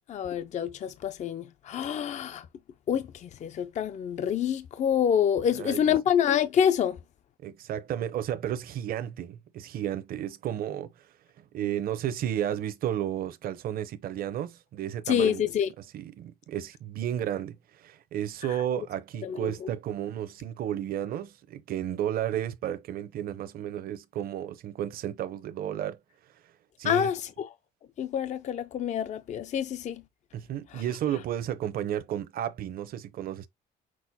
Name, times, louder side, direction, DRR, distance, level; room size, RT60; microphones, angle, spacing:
voice 1, 0.1-2.5 2.9-7.0 15.1-15.7 18.5-18.6 19.2-19.7 26.8-27.5 28.0-30.0 30.7-30.8, left 9 dB, 45° left, 0.5 m, -27 dB
voice 2, 5.5-5.9 7.4-10.9 11.5-15.4 15.8-26.0 26.8-27.1 30.3-33.5, right 11 dB, 60° right, 0.8 m, -33 dB
6.2 x 2.1 x 4.1 m
cardioid pair, 110°, 17 cm